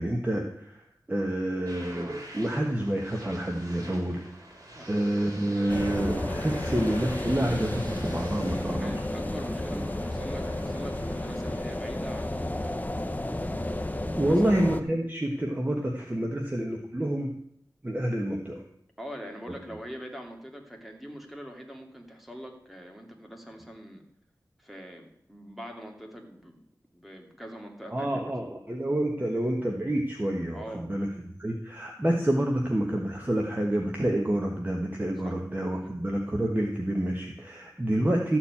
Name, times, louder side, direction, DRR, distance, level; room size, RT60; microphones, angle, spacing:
voice 1, 0.0-4.3 4.8-8.9 9.7-9.8 14.2-17.3 17.8-18.6 27.9-38.4, right 1 dB, 25° right, 1 dB, 1.4 m, -28 dB
sound 1, 1.7-11.7, right 1 dB, 50° right, 3.1 m, -46 dB
sound 2, 5.7-14.8, left 1 dB, 20° left, 0.9 m, -32 dB
voice 2, 8.5-12.9 14.2-14.4 16.2-16.4 19.0-24.0 24.6-26.6 26.9-28.3 30.5-30.9 35.2-35.4 35.8-36.0, equal, ahead, 2 dB, 2.5 m, -43 dB
13.5 x 4.5 x 8.6 m, 0.71 s
wide cardioid pair, 50°, 7 cm